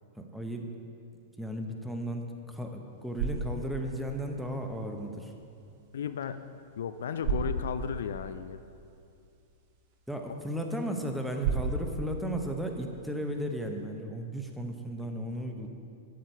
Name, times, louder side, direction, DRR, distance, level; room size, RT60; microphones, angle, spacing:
voice 1, 0.2-0.7 1.4-5.3 10.1-15.7, equal, 5° right, 3 dB, 0.9 m, -35 dB
sound 1, 2.8-13.9, right 4 dB, 50° right, 1.0 m, -38 dB
voice 2, 5.9-6.4 6.8-8.6 10.3-10.4, left 8 dB, 70° left, 11 dB, 0.3 m, -34 dB
8.2 x 7.6 x 4.5 m, 2.6 s
hypercardioid pair, 105°, 0 cm